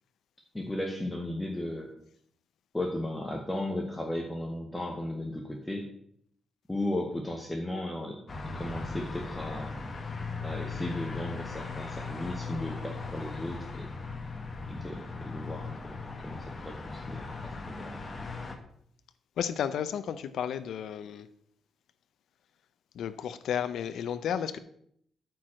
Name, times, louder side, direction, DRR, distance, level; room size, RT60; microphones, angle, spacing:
voice 1, 0.5-1.9 2.7-5.9 6.7-8.2 8.5-9.8 10.4-13.9 14.7-18.0, left 1 dB, 10° left, 1 dB, 1.0 m, -35 dB
sound 1, 8.3-18.6, left 4 dB, 30° left, 1.2 m, -38 dB
voice 2, 19.4-21.3 22.9-24.6, left 8 dB, 80° left, 11 dB, 0.5 m, -32 dB
9.1 x 4.6 x 7.4 m, 0.68 s
cardioid pair, 135°, 0 cm